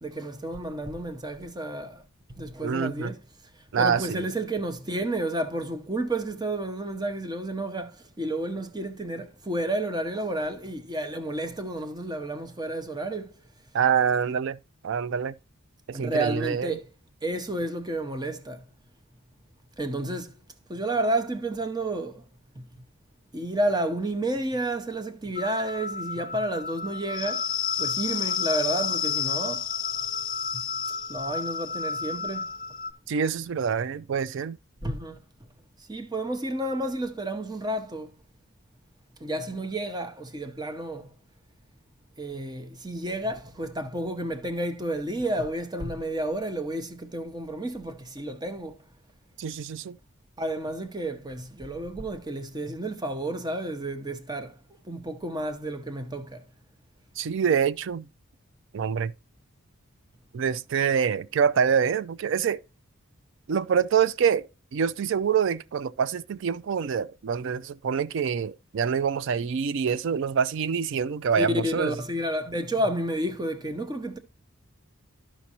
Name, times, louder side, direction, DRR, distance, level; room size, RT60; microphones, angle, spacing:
voice 1, 0.0-2.0 2.3-3.2 3.8-13.4 15.9-16.8 17.2-18.6 19.8-20.4 20.7-22.3 22.6-22.7 23.3-27.5 27.8-29.7 30.8-32.5 34.8-35.2 35.8-38.1 39.2-41.1 42.2-48.8 50.4-54.6 54.8-56.4 71.4-74.2, right 1 dB, 20° right, 0.7 m, -31 dB
voice 2, 2.6-3.1 3.7-4.2 13.7-14.6 14.8-15.3 15.9-16.8 33.1-34.6 49.4-50.0 57.2-58.1 58.7-59.1 60.3-62.6 63.5-64.5 64.7-71.9, right 7 dB, 60° right, 0.3 m, -26 dB
sound 1, 25.4-32.9, left 7 dB, 40° left, 0.4 m, -31 dB
13.0 x 5.1 x 2.8 m
head